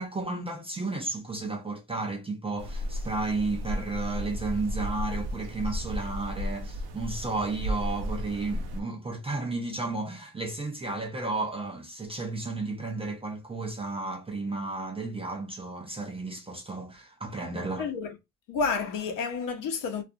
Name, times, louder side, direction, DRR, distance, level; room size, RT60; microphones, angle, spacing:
voice 1, 0.0-17.9, right 3 dB, 15° right, 0.4 m, -33 dB
sound 1, 2.6-8.8, left 1 dB, 70° right, 0.6 m, -34 dB
voice 2, 17.8-18.2 18.5-20.0, left 5 dB, 55° left, 0.8 m, -30 dB
2.4 x 2.3 x 2.5 m
cardioid pair, 140°, 39 cm